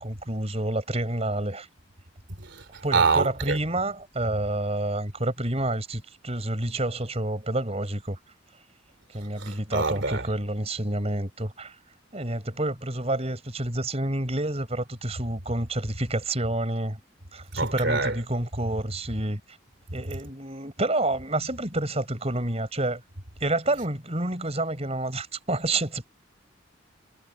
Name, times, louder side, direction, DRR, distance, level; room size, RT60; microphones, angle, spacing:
voice 1, 0.0-1.7 2.8-8.2 9.1-11.8 12.1-17.0 17.3-19.4 19.9-23.0 23.4-26.1, right 1 dB, 30° right, 5.4 m, -29 dB
voice 2, 2.4-3.6 9.4-10.3 17.5-18.2, right 4 dB, 60° right, 3.3 m, -26 dB
head